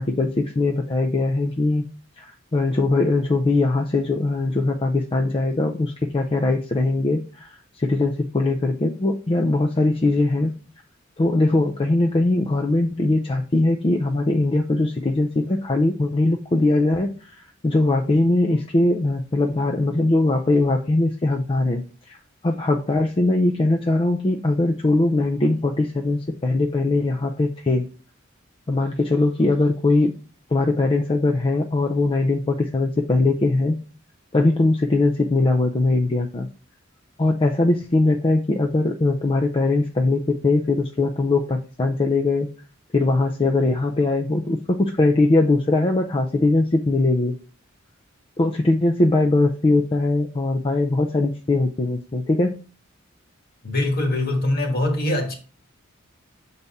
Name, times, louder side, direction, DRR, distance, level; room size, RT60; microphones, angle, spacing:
voice 1, 0.0-1.8 2.2-10.5 11.2-17.1 17.6-22.2 22.4-27.9 28.7-30.1 30.5-33.8 34.3-36.5 37.2-42.5 42.9-47.4 48.4-52.6, left 2 dB, 25° left, 0.4 m, -21 dB
voice 2, 53.6-55.3, left 1 dB, 50° left, 1.5 m, -22 dB
6.8 x 4.1 x 3.5 m
head